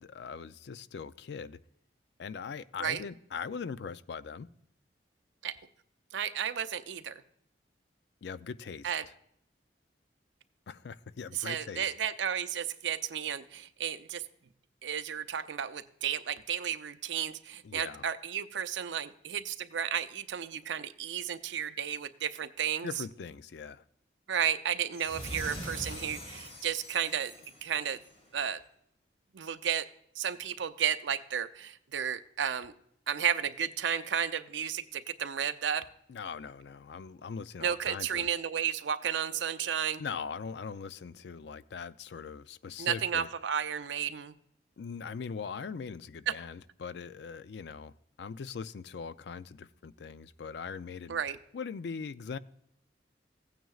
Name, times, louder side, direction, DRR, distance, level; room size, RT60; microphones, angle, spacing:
voice 1, 0.0-1.6 2.2-4.5 8.2-9.0 10.7-11.9 17.6-18.0 22.8-23.8 36.1-38.3 40.0-43.3 44.8-47.9 48.2-51.2 51.5-52.4, left 5 dB, 70° left, 0.4 m, -41 dB
voice 2, 6.1-7.2 8.8-9.0 11.3-14.2 14.8-22.9 24.3-28.0 28.3-28.6 29.3-29.9 30.2-32.7 33.1-35.8 37.6-40.0 42.8-44.3 46.3-46.4 51.1-51.4, right 8 dB, 85° right, 0.5 m, -33 dB
sound 1, 24.9-28.2, equal, 35° left, 1.9 m, -43 dB
15.5 x 9.2 x 2.4 m
head